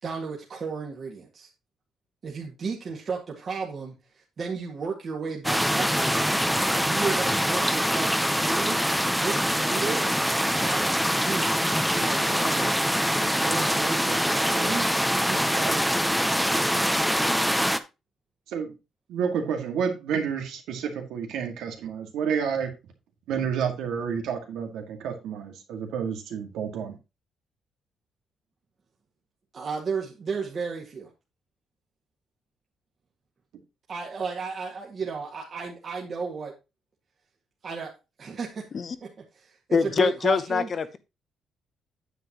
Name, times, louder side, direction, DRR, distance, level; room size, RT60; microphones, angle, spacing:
voice 1, 0.0-1.5 2.2-6.3 6.8-8.8 9.1-10.1 10.5-12.9 13.2-14.9 15.2-16.5 29.5-31.1 33.9-36.5 37.6-37.9 38.2-38.7 39.0-39.1 39.3-40.7, right 5 dB, 45° right, -2 dB, 2.0 m, -34 dB
sound 1, 5.4-17.8, equal, ahead, 0.8 m, -24 dB
voice 2, 19.1-22.7 23.3-27.0, right 7 dB, 85° right, 4 dB, 2.0 m, -30 dB
voice 3, 39.7-41.0, left 5 dB, 45° left, 13 dB, 0.9 m, -24 dB
9.2 x 7.7 x 3.0 m, 0.26 s
cardioid pair, 90°, 0 cm